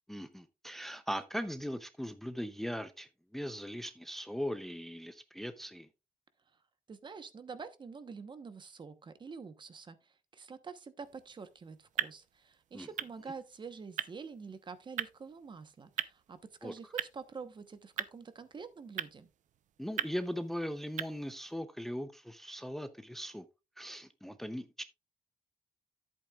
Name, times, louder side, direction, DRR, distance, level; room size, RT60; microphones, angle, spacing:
voice 1, 0.1-5.9 12.7-12.9 16.6-16.7 19.8-23.5 23.8-24.8, equal, ahead, 0.6 m, -39 dB
voice 2, 6.9-19.3, right 5 dB, 35° right, 1.0 m, -47 dB
sound 1, 11.0-21.6, right 10 dB, 65° right, 0.7 m, -43 dB
10.5 x 8.5 x 2.4 m
cardioid pair, 115°, 13 cm